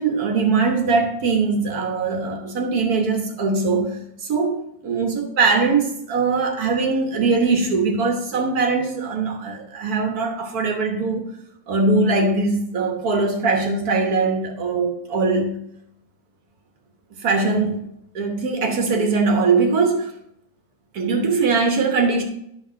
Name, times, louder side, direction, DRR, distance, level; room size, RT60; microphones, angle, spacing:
voice 1, 0.0-11.2 11.7-15.6 17.2-17.8 18.2-20.1 20.9-22.2, right 4 dB, 85° right, 3 dB, 1.8 m, -21 dB
10.0 x 3.6 x 6.2 m, 0.74 s
omnidirectional pair, 1.6 m